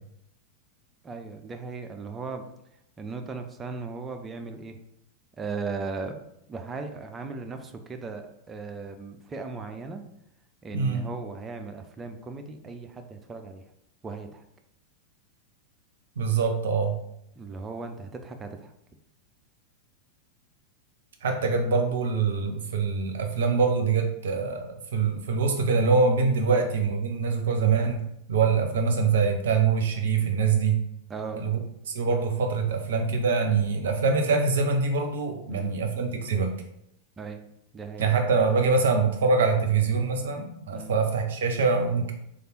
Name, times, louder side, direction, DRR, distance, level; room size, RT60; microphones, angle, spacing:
voice 1, 1.0-2.5 3.0-4.8 5.4-6.2 6.5-10.0 10.6-13.6 14.0-14.4 17.4-18.7 26.5-26.6 31.1-31.4 35.5-35.8 37.2-37.5 37.7-38.1 40.7-41.0, right 4 dB, 20° right, 6 dB, 0.4 m, -37 dB
voice 2, 10.7-11.1 16.2-17.0 21.2-28.0 28.3-30.8 31.3-31.6 31.9-36.5 38.0-42.1, right 4 dB, 60° right, 4 dB, 0.6 m, -24 dB
3.3 x 2.4 x 4.2 m, 0.78 s
figure-of-eight pair, 90°, 0 cm